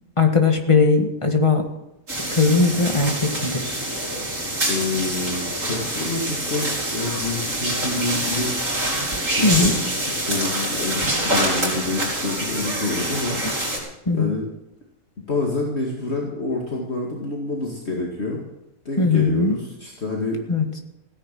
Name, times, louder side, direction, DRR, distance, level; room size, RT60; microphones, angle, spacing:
voice 1, 0.2-1.6 2.3-3.9 9.4-9.7 14.1-14.3 19.0-19.6 20.5-20.7, left 4 dB, 25° left, 4 dB, 1.7 m, -19 dB
sound 1, 2.1-13.8, right 1 dB, 75° right, 5.5 m, -26 dB
voice 2, 4.7-8.6 9.4-13.4 14.1-14.4 15.3-18.4 18.9-20.4, left 3 dB, 50° left, -2 dB, 2.4 m, -27 dB
16.5 x 10.0 x 7.6 m, 0.89 s
omnidirectional pair, 1.4 m